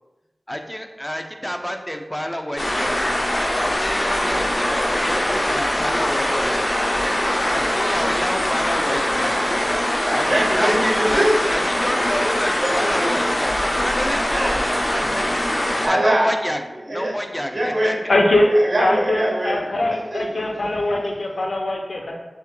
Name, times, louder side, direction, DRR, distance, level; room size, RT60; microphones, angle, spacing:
voice 1, 0.5-3.0 3.6-6.6 7.5-9.4 10.1-11.2 11.5-14.6 15.2-15.3 15.9-16.6 16.9-17.9, equal, 10° left, 4 dB, 0.5 m, -28 dB
sound 1, 2.6-15.9, left 1 dB, 50° left, 0.9 m, -22 dB
voice 2, 9.5-11.5 12.5-12.9 13.6-13.8 14.1-15.4 15.6-16.4 16.8-17.2 17.5-18.1 18.5-19.6 20.1-20.2, right 1 dB, 65° right, -3 dB, 1.3 m, -24 dB
voice 3, 18.1-18.5 18.8-22.1, left 1 dB, 85° left, 1 dB, 0.7 m, -21 dB
7.1 x 3.0 x 2.2 m, 1.1 s
wide cardioid pair, 45°, 0 cm